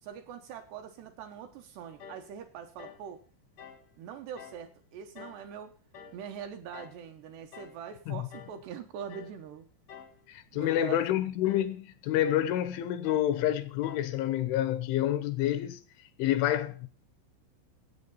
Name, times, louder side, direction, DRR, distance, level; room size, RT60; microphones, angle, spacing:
voice 1, 0.0-3.2 4.0-5.7 6.1-9.7 10.5-11.0, right 8 dB, 75° right, 2.8 m, -43 dB
sound 1, 2.0-2.3 2.8-3.1 3.6-3.9 4.4-4.6 5.2-5.5 5.9-6.2 6.7-7.0 7.5-7.8 8.3-8.6 9.1-9.4 9.9-10.2 10.7-11.0 11.5-11.7 12.2-12.5 13.0-13.3 13.8-14.1, left 7 dB, 65° left, 1.7 m, -49 dB
voice 2, 10.3-15.8 16.2-16.9, left 12 dB, 80° left, 3.2 m, -28 dB
16.5 x 8.2 x 5.5 m
omnidirectional pair, 5.7 m